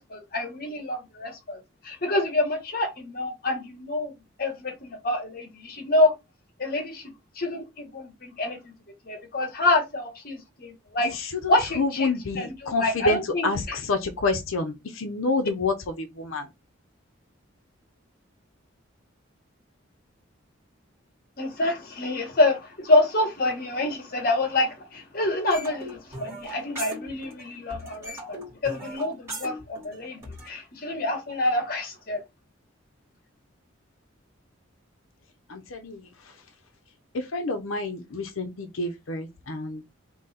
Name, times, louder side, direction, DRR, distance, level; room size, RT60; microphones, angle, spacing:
voice 1, 0.0-1.6 1.8-6.1 6.6-7.0 7.4-8.7 9.0-11.1 11.5-13.5 21.4-32.2, left 2 dB, 45° left, 1.2 m, -27 dB
voice 2, 11.0-16.5 35.5-36.1 37.1-39.8, left 3 dB, 90° left, 0.7 m, -28 dB
sound 1, 25.5-27.5 27.7-30.5, right 1 dB, 15° right, 2.1 m, -38 dB
3.9 x 2.8 x 4.1 m
head